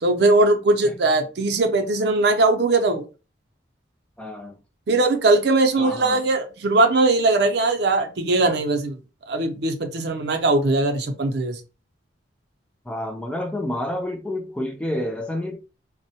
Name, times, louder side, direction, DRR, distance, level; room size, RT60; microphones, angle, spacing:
voice 1, 0.0-3.0 4.9-9.0 9.3-11.6, right 2 dB, 60° right, 0.5 m, -20 dB
voice 2, 4.2-4.6 5.8-6.3 12.9-15.6, left 1 dB, 5° left, 0.3 m, -29 dB
3.4 x 2.1 x 2.7 m
head